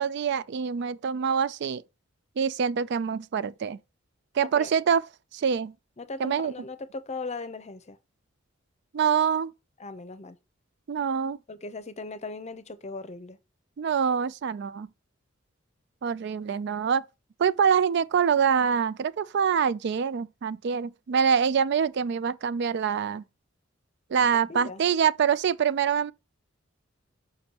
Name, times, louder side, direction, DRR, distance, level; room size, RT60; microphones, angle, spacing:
voice 1, 0.0-1.8 2.4-3.8 4.3-5.0 5.3-5.7 6.2-6.5 8.9-9.5 10.9-11.4 13.8-14.9 16.0-17.0 17.4-23.2 24.1-26.1, right 7 dB, 60° right, 0.4 m, -25 dB
voice 2, 4.4-4.7 6.0-8.0 9.8-10.4 11.5-13.4 24.3-24.8, left 3 dB, 35° left, 0.7 m, -38 dB
7.0 x 5.3 x 2.9 m
head